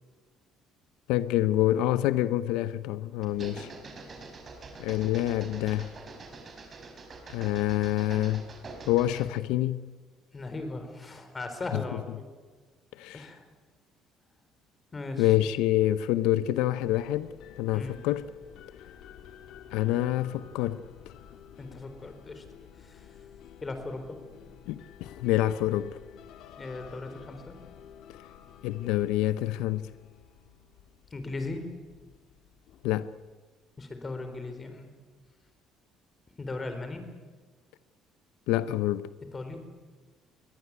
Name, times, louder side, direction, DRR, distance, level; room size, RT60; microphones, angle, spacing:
voice 1, 1.1-3.7 4.8-5.9 7.3-8.5 8.9-9.9 11.7-11.8 12.9-13.3 15.2-18.3 19.7-20.8 24.7-26.0 28.6-29.9 32.8-33.1 38.5-39.1, left 14 dB, 85° left, 0.6 m, -27 dB
sound 1, 3.2-9.4, right 3 dB, 35° right, 4.7 m, -45 dB
voice 2, 10.3-12.3 13.1-13.4 14.9-15.3 17.7-18.0 21.6-22.4 22.8-23.1 23.6-24.2 26.6-27.6 31.1-31.7 33.8-34.9 36.4-37.0 39.3-39.6, left 2 dB, 20° left, 4.1 m, -38 dB
sound 2, 16.8-33.3, left 9 dB, 70° left, 2.0 m, -51 dB
22.5 x 18.0 x 9.6 m
cardioid pair, 125°, 0 cm